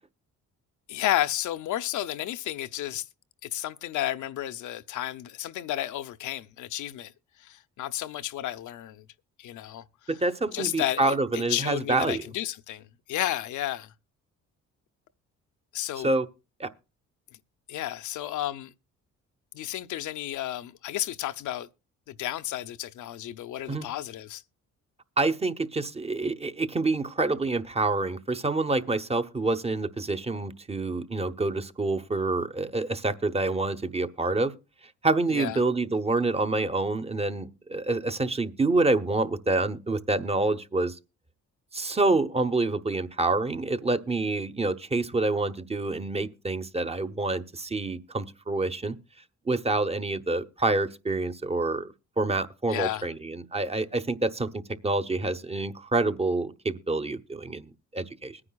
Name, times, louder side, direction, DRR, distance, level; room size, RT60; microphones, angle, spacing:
voice 1, 0.9-3.0 3.4-7.1 7.4-9.0 9.4-9.8 10.5-12.8 13.1-13.9 15.7-16.1 17.7-18.7 19.5-21.7 22.1-24.4 35.3-35.6 52.7-53.1, left 13 dB, 75° left, 0.7 m, -32 dB
voice 2, 10.1-12.3 16.0-16.3 16.6-16.7 23.7-23.9 25.2-34.5 35.0-41.0 41.7-49.0 49.5-58.4, right 2 dB, 20° right, 0.8 m, -27 dB
21.5 x 9.8 x 2.3 m
cardioid pair, 90°, 30 cm